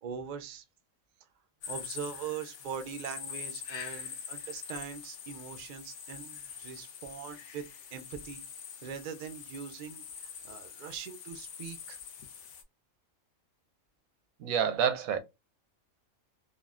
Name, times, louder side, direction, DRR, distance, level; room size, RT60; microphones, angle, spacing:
voice 1, 0.0-0.6 1.7-8.4 8.8-12.0, right 7 dB, 70° right, 0.4 m, -42 dB
sound 1, 1.6-12.6, left 7 dB, 65° left, 0.9 m, -44 dB
voice 2, 14.4-15.2, right 8 dB, 85° right, 1.0 m, -28 dB
3.7 x 2.2 x 2.4 m
omnidirectional pair, 1.4 m